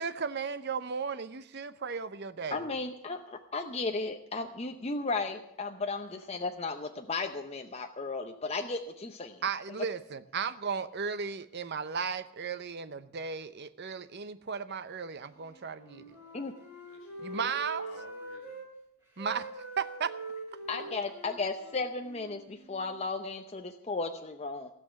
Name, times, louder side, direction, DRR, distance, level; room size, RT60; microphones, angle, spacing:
voice 1, 0.0-2.7 9.4-16.2 17.2-17.9 19.2-20.1, right 6 dB, 50° right, 12 dB, 0.7 m, -35 dB
voice 2, 2.5-9.4 16.3-16.5 20.7-24.7, left 3 dB, 30° left, 5 dB, 0.7 m, -35 dB
voice 3, 15.5-16.4 16.9-18.6 20.7-20.9, left 3 dB, 65° left, 2 dB, 1.6 m, -55 dB
Wind instrument woodwind instrument, 15.7-18.7 19.2-23.0, right 2 dB, 10° right, 3.9 m, -44 dB
17.0 x 6.1 x 9.9 m, 0.76 s
head